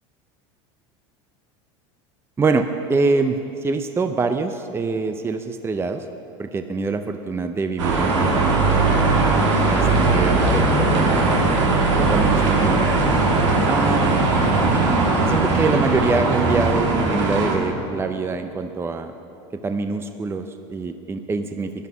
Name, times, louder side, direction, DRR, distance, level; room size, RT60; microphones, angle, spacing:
voice 1, 2.4-6.1 6.4-8.6 9.6-11.3 12.0-13.0 13.7-14.2 14.7-14.9 15.3-19.1 19.6-21.9, right 4 dB, 15° right, 8 dB, 0.6 m, -25 dB
sound 1, 7.8-17.6, right 3 dB, 90° right, 2.4 m, -19 dB
14.0 x 11.0 x 6.1 m, 2.8 s
supercardioid pair, 100°, 15 cm